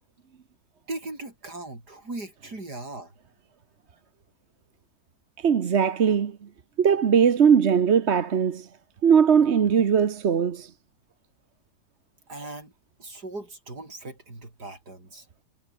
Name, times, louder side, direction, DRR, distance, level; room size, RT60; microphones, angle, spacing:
voice 1, 0.9-3.1 12.3-12.7 13.0-15.3, right 2 dB, 90° right, 7.2 m, -38 dB
voice 2, 5.4-6.4 6.8-8.7 9.0-10.7, right 7 dB, 45° right, 1.2 m, -20 dB
omnidirectional pair, 1.7 m